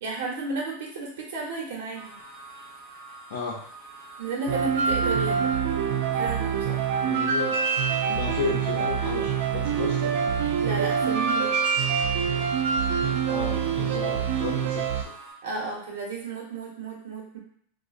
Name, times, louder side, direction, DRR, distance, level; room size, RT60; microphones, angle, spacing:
voice 1, 0.0-2.1 4.2-5.6 6.1-6.9 10.6-11.5 15.4-17.4, right 3 dB, 70° right, -1 dB, 1.0 m, -33 dB
sound 1, 1.9-15.3, right 3 dB, 5° right, 1.1 m, -46 dB
sound 2, 4.5-15.0, right 6 dB, 55° right, 0.4 m, -25 dB
voice 2, 7.0-7.6 8.1-10.3 13.2-15.0, left 6 dB, 65° left, -4 dB, 0.6 m, -33 dB
3.6 x 2.4 x 2.5 m, 0.65 s
supercardioid pair, 175°, 0 cm